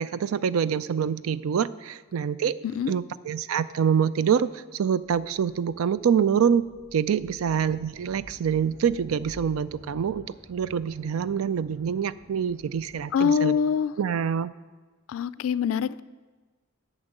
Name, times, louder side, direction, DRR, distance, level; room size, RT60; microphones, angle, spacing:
voice 1, 0.0-6.6 6.9-10.2 10.5-13.6 14.0-14.5, right 7 dB, 90° right, 16 dB, 0.4 m, -26 dB
sound 1, 5.0-13.3, equal, 15° right, 1.5 m, -51 dB
voice 2, 13.1-13.9 15.1-16.0, left 7 dB, 75° left, 17 dB, 0.3 m, -24 dB
8.9 x 6.3 x 7.8 m, 1.3 s
head